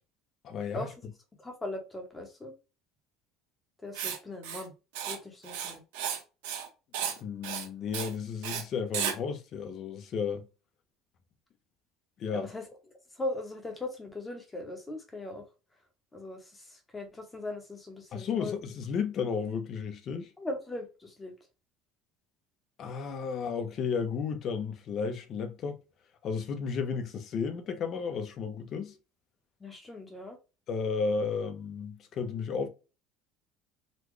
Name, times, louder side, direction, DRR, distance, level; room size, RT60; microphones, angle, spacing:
voice 1, 0.4-0.9 7.0-10.5 12.2-12.5 18.1-20.3 22.8-25.8 26.2-28.9 30.7-32.7, left 5 dB, 40° left, 0.7 m, -33 dB
voice 2, 1.4-2.5 3.8-4.7 5.1-5.8 12.3-12.7 13.2-15.5 16.1-18.5 20.4-21.3 29.6-30.4, left 2 dB, 15° left, 1.0 m, -39 dB
Writing, 3.9-4.2 4.4-4.6 4.9-5.2 5.4-6.2 6.4-6.7 6.9-7.2 7.4-7.7 7.9-8.1 8.4-8.6 8.9-9.1, right 8 dB, 90° right, 1.0 m, -33 dB
4.1 x 2.2 x 3.1 m
cardioid pair, 135°, 0 cm